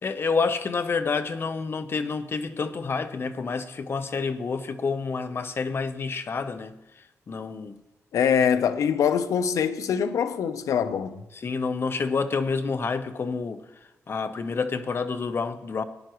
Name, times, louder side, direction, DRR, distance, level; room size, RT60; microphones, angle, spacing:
voice 1, 0.0-7.8 11.3-13.6 14.1-15.8, left 4 dB, 45° left, 0.8 m, -28 dB
voice 2, 8.1-11.2, left 7 dB, 85° left, 0.6 m, -23 dB
17.5 x 10.5 x 3.1 m
cardioid pair, 95°, 5 cm